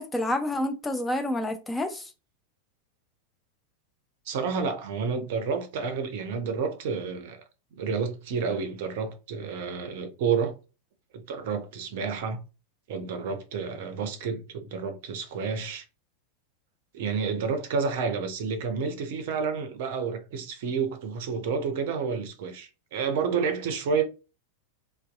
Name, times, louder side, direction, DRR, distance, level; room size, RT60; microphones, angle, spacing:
voice 1, 0.0-2.1, left 1 dB, 10° left, 0.3 m, -29 dB
voice 2, 4.3-7.4 7.7-10.5 11.3-12.4 12.9-15.8 16.9-24.0, right 5 dB, 50° right, 0.5 m, -30 dB
2.6 x 2.2 x 2.3 m
figure-of-eight pair, 90°, 0 cm